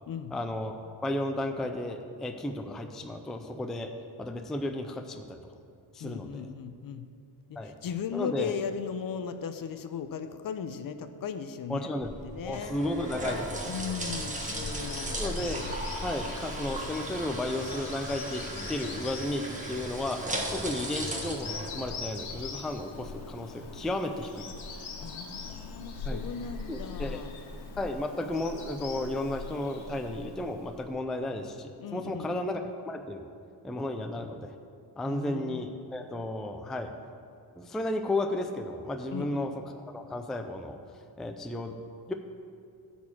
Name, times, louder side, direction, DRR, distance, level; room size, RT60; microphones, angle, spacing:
voice 1, 0.3-3.9 4.2-5.4 5.9-6.5 7.6-7.7 8.1-8.5 11.7-12.1 12.5-13.7 14.5-14.6 15.2-15.7 16.0-24.5 26.0-26.2 26.7-27.2 27.8-33.3 33.6-34.5 35.0-36.9 37.6-39.5 39.9-40.8 41.2-41.8 42.1-42.2, left 1 dB, ahead, 5 dB, 0.4 m, -33 dB
voice 2, 6.0-7.1 7.5-12.7 13.7-15.2 25.0-27.3 31.8-32.4 35.1-35.7 39.1-39.5, left 7 dB, 50° left, 10 dB, 0.6 m, -37 dB
sound 1, 12.0-22.4, right 1 dB, 15° right, 1.3 m, -37 dB
Bird vocalization bird call bird song, 12.9-30.9, left 4 dB, 85° left, 1.5 m, -42 dB
13.0 x 4.3 x 7.3 m, 2.4 s
cardioid pair, 115°, 46 cm